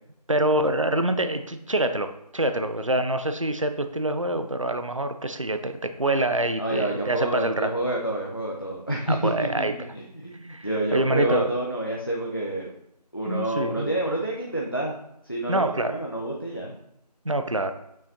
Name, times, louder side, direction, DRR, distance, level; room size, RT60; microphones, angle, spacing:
voice 1, 0.3-7.7 9.1-9.7 10.5-11.5 13.3-13.9 15.5-16.0 17.2-17.7, right 1 dB, 50° right, 9 dB, 0.6 m, -26 dB
voice 2, 6.6-12.7 13.1-14.9 15.2-16.7, right 1 dB, 35° left, -1 dB, 0.7 m, -28 dB
8.6 x 6.1 x 2.7 m, 0.81 s
figure-of-eight pair, 175°, 21 cm